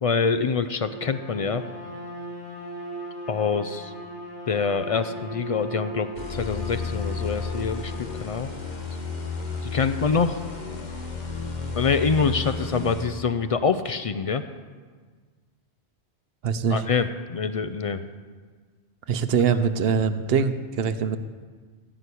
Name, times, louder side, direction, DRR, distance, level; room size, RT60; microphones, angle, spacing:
voice 1, 0.0-1.6 3.3-3.9 4.5-8.5 9.6-10.4 11.8-14.4 16.7-18.1, left 5 dB, 60° left, 11 dB, 0.3 m, -25 dB
Bowed string instrument, 0.8-8.3, right 1 dB, 75° left, 3.8 m, -38 dB
sound 1, 6.2-13.1, left 4 dB, 40° left, 1.3 m, -32 dB
voice 2, 16.4-16.8 19.1-21.2, right 6 dB, 65° right, 11 dB, 0.9 m, -23 dB
15.5 x 6.0 x 8.4 m, 1.5 s
omnidirectional pair, 1.2 m